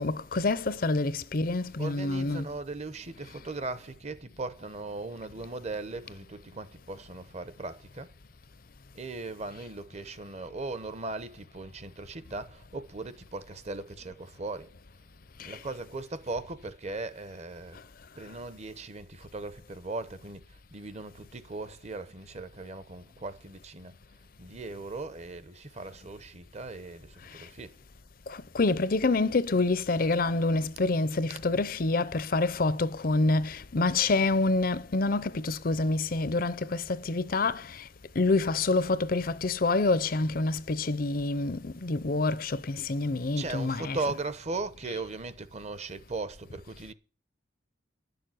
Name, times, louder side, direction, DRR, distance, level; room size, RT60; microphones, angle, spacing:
voice 1, 0.0-2.5 15.4-15.6 28.3-37.8 38.2-44.0, left 3 dB, 45° left, 0.6 m, -27 dB
voice 2, 1.8-8.1 8.9-14.7 15.4-17.8 18.1-23.9 24.4-27.8 43.3-46.9, right 3 dB, 35° right, 0.9 m, -38 dB
11.0 x 6.8 x 7.7 m
head